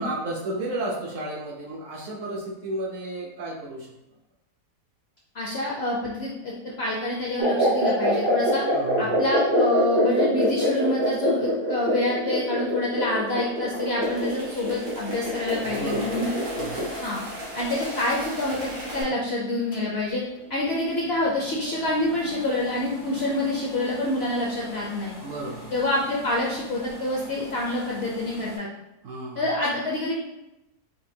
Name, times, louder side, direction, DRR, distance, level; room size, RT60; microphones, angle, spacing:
voice 1, 0.0-3.9 8.7-9.2 15.6-16.3 16.6-16.8 25.2-25.8 29.0-29.5, right 2 dB, 65° right, -1 dB, 0.8 m, -33 dB
voice 2, 5.3-8.6 9.0-16.3 17.0-17.2 17.5-20.2 20.5-25.1 25.7-28.7 29.4-30.1, left 2 dB, 60° left, -4 dB, 0.6 m, -27 dB
sound 1, 7.4-17.0, equal, 35° right, 0.4 m, -24 dB
sound 2, 13.5-19.0, equal, 85° right, 1.6 m, -36 dB
sound 3, 19.7-28.6, left 1 dB, 85° left, 1.5 m, -43 dB
4.4 x 2.6 x 2.7 m, 0.93 s
omnidirectional pair, 1.7 m